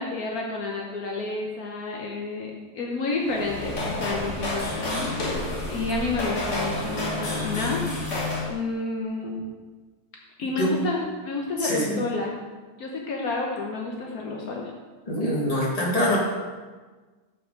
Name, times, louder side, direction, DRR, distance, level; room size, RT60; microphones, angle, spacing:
voice 1, 0.0-7.8 8.5-9.4 10.4-12.4 12.8-14.7, left 3 dB, 70° left, -1 dB, 1.3 m, -30 dB
sound 1, 3.2-8.5, left 1 dB, 50° left, 1.8 m, -29 dB
voice 2, 11.6-12.0 15.1-16.2, left 1 dB, 25° left, -3 dB, 1.7 m, -24 dB
7.4 x 6.0 x 5.1 m, 1.4 s
omnidirectional pair, 1.7 m